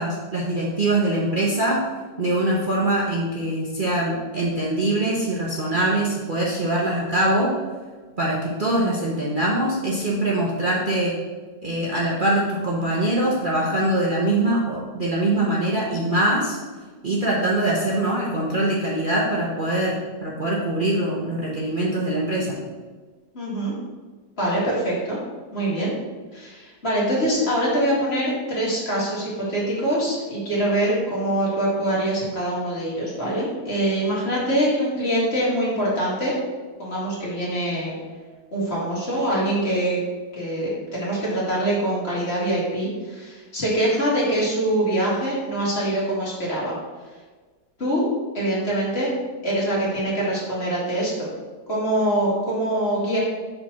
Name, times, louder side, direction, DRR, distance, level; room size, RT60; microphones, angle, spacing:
voice 1, 0.0-1.8 2.2-7.5 8.2-11.2 11.6-16.6 17.0-22.6, right 1 dB, 35° right, -5 dB, 1.0 m, -23 dB
voice 2, 23.3-23.7 24.4-25.2 25.5-25.9 26.3-36.3 36.8-37.9 38.5-40.0 40.3-46.8 47.8-48.1 48.3-49.1 49.4-51.3 51.7-53.2, right 1 dB, 40° left, -6 dB, 2.3 m, -24 dB
5.3 x 4.3 x 6.2 m, 1.4 s
omnidirectional pair, 1.7 m